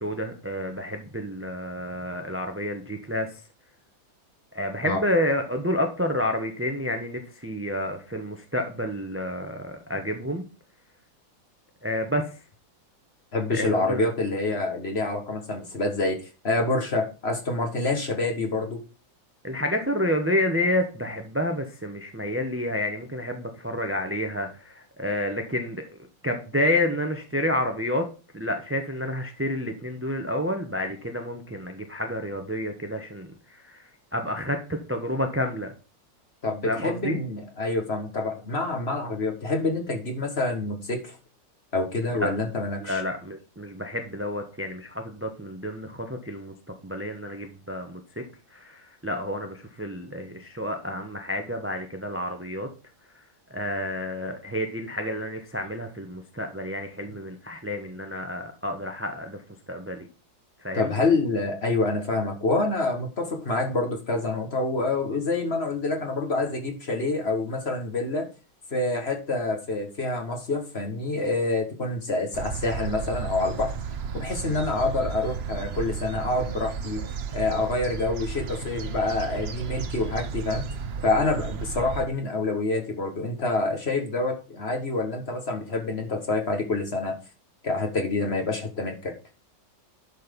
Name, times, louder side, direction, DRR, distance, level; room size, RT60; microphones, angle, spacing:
voice 1, 0.0-3.4 4.5-10.5 11.8-12.4 13.5-14.1 19.4-25.8 26.2-28.1 28.3-35.7 36.6-37.2 42.1-42.3 42.8-46.5 46.8-48.2 48.5-52.7 53.1-53.2 53.5-59.4 59.7-60.1 60.6-60.9 74.5-74.6, left 1 dB, 10° right, 4 dB, 0.6 m, -29 dB
voice 2, 13.3-18.8 36.4-41.2 41.7-43.0 60.7-68.3 68.7-73.7 74.1-77.0 77.3-80.6 81.0-87.2 87.6-89.1, left 2 dB, 35° left, 3 dB, 1.5 m, -27 dB
sound 1, 72.3-82.1, right 6 dB, 65° right, 0.6 m, -33 dB
11.5 x 4.4 x 5.3 m, 0.34 s
omnidirectional pair, 2.1 m